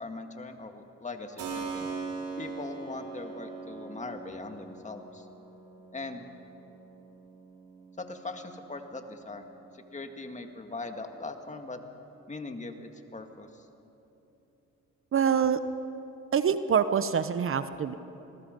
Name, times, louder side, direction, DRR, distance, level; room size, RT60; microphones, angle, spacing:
voice 1, 0.0-1.9 2.4-5.3 5.9-6.2 8.0-9.4 9.7-11.8 12.3-13.7, left 3 dB, 25° left, 5 dB, 1.9 m, -40 dB
Keyboard (musical), 1.4-10.0, right 4 dB, 75° right, 5.2 m, -42 dB
voice 2, 15.1-15.6 16.3-17.9, right 7 dB, 45° right, 11 dB, 0.8 m, -25 dB
27.0 x 19.5 x 5.3 m, 3.0 s
cardioid pair, 90°, 30 cm